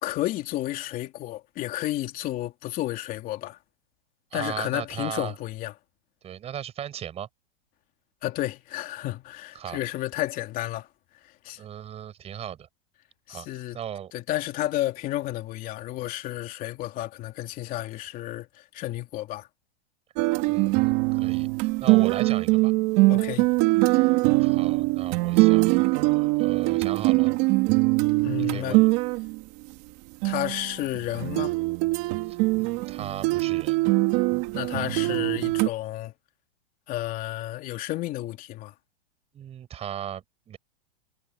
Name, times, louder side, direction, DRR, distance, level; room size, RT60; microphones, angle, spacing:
voice 1, 0.0-3.6 4.3-5.7 8.2-10.9 11.4-11.6 13.3-13.8 14.1-19.5 23.1-23.5 28.2-28.8 30.2-31.6 34.5-36.1 36.9-38.7, left 15 dB, 25° left, 3.1 m, -31 dB
voice 2, 4.3-5.3 6.2-7.3 9.5-9.8 11.6-12.7 13.3-13.5 13.7-14.1 20.5-22.7 24.4-27.3 28.4-28.9 32.3-33.8 39.3-40.6, right 10 dB, 20° right, 6.7 m, -37 dB
sound 1, 20.2-29.4 30.2-35.7, right 23 dB, 35° right, 2.3 m, -22 dB
supercardioid pair, 160°, 33 cm